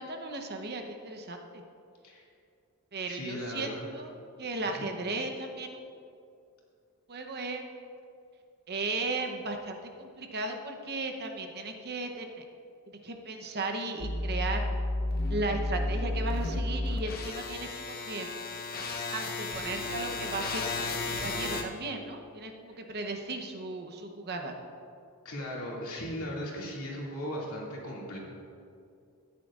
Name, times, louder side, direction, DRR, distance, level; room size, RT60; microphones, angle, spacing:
voice 1, 0.0-1.6 2.9-4.1 4.4-5.7 7.1-7.7 8.7-12.4 12.9-14.6 15.3-18.3 19.1-24.6, right 2 dB, 50° right, 4 dB, 0.8 m, -36 dB
voice 2, 3.1-3.9 4.6-4.9 22.7-22.8 25.2-28.2, equal, 85° left, -4 dB, 2.3 m, -37 dB
sound 1, 14.0-21.6, left 2 dB, 45° left, 0.8 m, -32 dB
14.5 x 9.6 x 2.5 m, 2.4 s
head